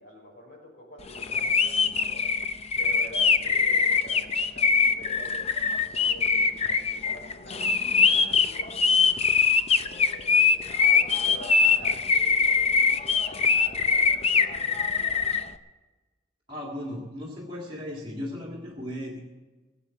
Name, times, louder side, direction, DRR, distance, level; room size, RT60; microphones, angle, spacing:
voice 1, 0.0-2.3 2.8-9.4 9.8-15.2, equal, 55° left, -3 dB, 5.7 m, -47 dB
sound 1, 1.2-15.4, left 5 dB, 30° left, 0.6 m, -22 dB
voice 2, 16.5-19.2, left 1 dB, 25° right, -2 dB, 1.9 m, -36 dB
17.5 x 8.2 x 7.5 m, 1.2 s
head